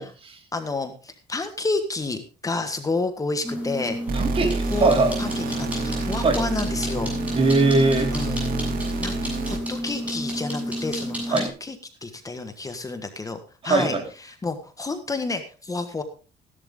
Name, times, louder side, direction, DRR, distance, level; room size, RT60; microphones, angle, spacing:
voice 1, 0.0-0.4 4.1-5.1 6.2-6.4 7.3-8.1 11.3-11.5 13.6-14.0, right 3 dB, 35° right, 4 dB, 3.2 m, -21 dB
voice 2, 0.5-4.0 4.6-4.9 5.2-7.1 8.1-8.4 9.0-11.8 12.0-13.4 13.6-14.0 14.2-16.0, left 3 dB, 20° left, 7 dB, 1.5 m, -30 dB
sound 1, 3.4-11.5, equal, 10° right, 7.4 m, -30 dB
sound 2, 4.1-9.8, right 3 dB, 60° right, 2.5 m, -29 dB
15.0 x 11.5 x 3.8 m, 0.35 s
cardioid pair, 110°, 17 cm